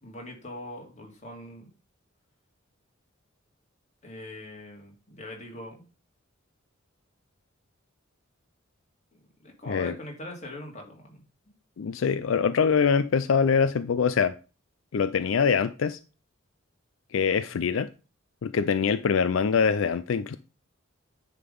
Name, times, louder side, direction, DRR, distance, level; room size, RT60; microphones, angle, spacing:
voice 1, 0.0-1.7 4.0-5.8 9.1-11.5, left 1 dB, 35° left, 2.6 m, -42 dB
voice 2, 11.8-14.3 14.9-16.0 17.1-17.9 18.4-20.4, left 6 dB, 80° left, 0.4 m, -24 dB
9.9 x 3.8 x 5.3 m
head